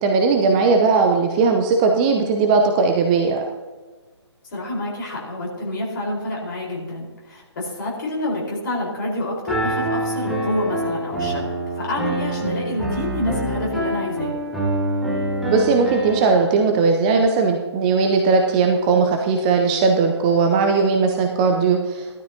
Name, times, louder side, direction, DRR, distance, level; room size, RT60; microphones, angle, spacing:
voice 1, 0.0-3.4 15.5-22.2, right 4 dB, 15° right, 3 dB, 0.7 m, -18 dB
voice 2, 4.5-11.4 11.8-14.3, left 1 dB, 40° left, -3 dB, 4.3 m, -27 dB
Piano, 9.5-16.3, right 1 dB, ahead, 1.2 m, -25 dB
17.0 x 12.5 x 2.8 m, 1.3 s
figure-of-eight pair, 140°, 15 cm